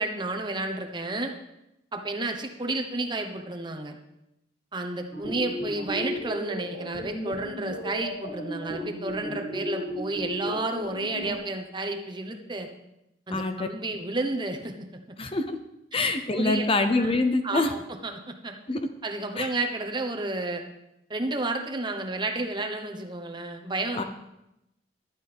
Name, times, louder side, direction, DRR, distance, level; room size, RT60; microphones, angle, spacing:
voice 1, 0.0-1.3 1.9-4.0 4.7-12.7 13.3-15.2 16.3-17.1 17.4-18.5 19.0-20.6 21.1-24.0, right 2 dB, 25° right, 4 dB, 1.1 m, -31 dB
sound 1, 5.1-11.3, equal, 65° left, 2.9 m, -35 dB
voice 2, 13.3-13.7 15.2-15.6 15.9-17.7 18.7-18.8 19.4-19.5 23.9-24.0, left 2 dB, 30° left, 7 dB, 0.7 m, -25 dB
15.5 x 11.5 x 3.5 m, 0.87 s
head